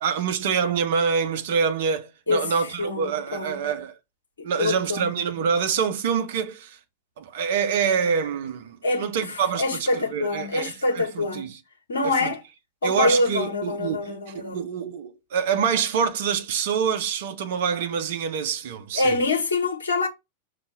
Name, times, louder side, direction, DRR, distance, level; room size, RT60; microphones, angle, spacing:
voice 1, 0.0-3.9 4.4-6.8 7.2-11.5 12.0-12.3 12.8-14.1 14.3-19.2, right 6 dB, 55° right, 1.0 m, -26 dB
voice 2, 2.3-3.7 4.4-5.1 8.8-11.5 11.9-12.4 12.8-14.6 18.9-20.1, left 2 dB, 70° left, 1.7 m, -25 dB
5.7 x 3.4 x 5.4 m
figure-of-eight pair, 90°, 0 cm